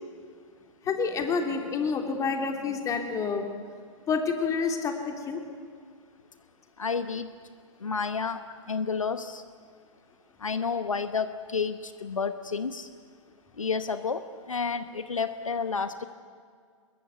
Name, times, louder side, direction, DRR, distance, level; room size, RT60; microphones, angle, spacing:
voice 1, 0.8-3.5 4.1-5.4, left 5 dB, 20° left, 4 dB, 3.1 m, -28 dB
voice 2, 6.8-7.3 7.8-8.4 8.7-9.4 10.4-12.9 13.6-14.2 14.5-16.1, left 5 dB, 75° left, 11 dB, 1.1 m, -30 dB
24.5 x 22.0 x 8.3 m, 2.1 s
figure-of-eight pair, 110°, 17 cm